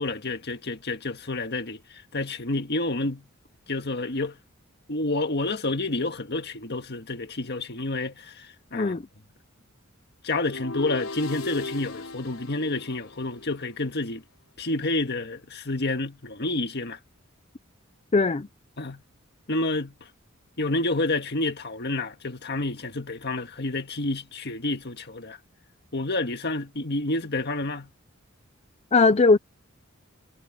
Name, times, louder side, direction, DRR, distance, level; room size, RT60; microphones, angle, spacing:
voice 1, 0.0-1.8 2.1-3.2 3.7-4.4 4.9-9.0 10.2-14.2 14.6-17.0 18.8-19.0 19.5-19.9 20.6-25.4 25.9-27.9, left 2 dB, 55° left, 1.8 m, -29 dB
sound 1, 10.4-13.7, left 2 dB, 85° left, 3.6 m, -37 dB
voice 2, 18.1-18.5 28.9-29.4, left 3 dB, 30° left, 0.5 m, -19 dB
head